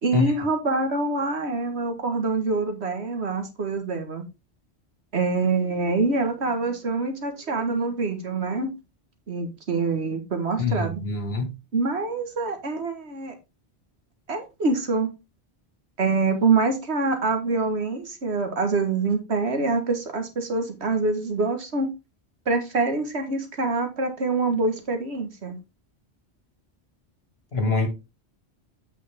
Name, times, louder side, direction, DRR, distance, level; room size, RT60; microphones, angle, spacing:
voice 1, 0.0-4.2 5.1-8.7 9.3-11.0 11.7-13.3 14.3-15.1 16.0-21.9 22.5-25.6, right 3 dB, 80° right, 1.9 m, -25 dB
voice 2, 10.6-11.5 27.5-27.9, left 3 dB, 65° left, 2.2 m, -24 dB
8.4 x 5.9 x 3.5 m
omnidirectional pair, 1.1 m